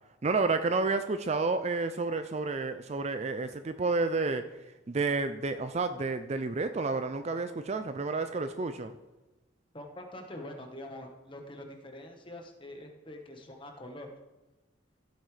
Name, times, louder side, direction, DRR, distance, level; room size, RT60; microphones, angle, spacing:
voice 1, 0.2-4.4 4.9-8.9, right 3 dB, 35° right, 9 dB, 0.4 m, -30 dB
voice 2, 9.7-14.1, left 1 dB, 25° left, 3 dB, 1.3 m, -45 dB
15.0 x 8.2 x 3.3 m, 1.1 s
head